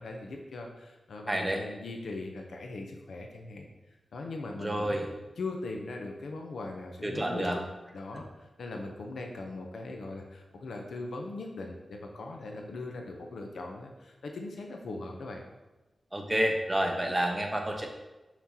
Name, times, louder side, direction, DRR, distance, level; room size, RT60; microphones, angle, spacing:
voice 1, 0.0-3.7 4.1-5.0 5.4-7.7 7.9-15.4, left 2 dB, 90° left, 2 dB, 0.7 m, -40 dB
voice 2, 1.3-1.6 4.6-5.1 7.0-7.6 16.1-17.9, right 1 dB, 20° right, 2 dB, 1.0 m, -29 dB
6.2 x 5.9 x 2.8 m, 1.1 s
wide cardioid pair, 90°, 0 cm